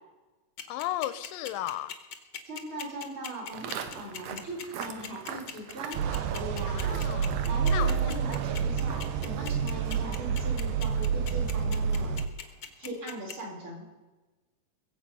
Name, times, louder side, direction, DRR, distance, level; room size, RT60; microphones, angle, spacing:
sound 1, 0.6-13.3, left 8 dB, 60° left, 1.2 m, -40 dB
voice 1, 0.7-1.9 6.7-7.4 7.7-7.9, left 14 dB, 90° left, 15 dB, 2.4 m, -34 dB
voice 2, 2.5-7.0 7.4-12.1 12.8-13.8, right 1 dB, 35° right, -3 dB, 5.3 m, -39 dB
Walk footsteps, 3.5-12.7, right 7 dB, 70° right, 1.6 m, -45 dB
sound 2, 5.9-12.3, right 6 dB, 85° right, 2.4 m, -29 dB
21.5 x 8.0 x 5.6 m, 1.2 s
omnidirectional pair, 4.0 m